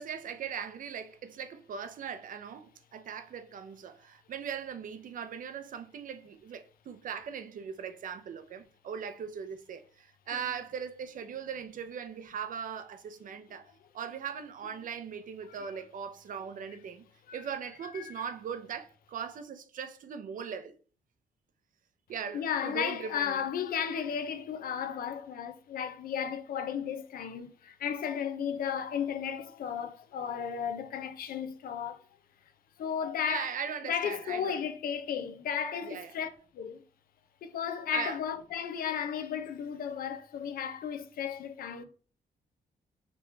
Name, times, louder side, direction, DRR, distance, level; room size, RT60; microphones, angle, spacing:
voice 1, 0.0-13.7 13.9-17.0 17.3-20.8 22.1-23.4 33.2-34.6 35.9-36.1 37.9-38.2, right 7 dB, 65° right, 0.6 m, -39 dB
voice 2, 17.9-18.3 22.3-32.0 32.8-33.5 33.8-36.8 37.4-41.8, left 8 dB, 80° left, 0.6 m, -34 dB
5.2 x 2.9 x 3.3 m
cardioid pair, 95°, 15 cm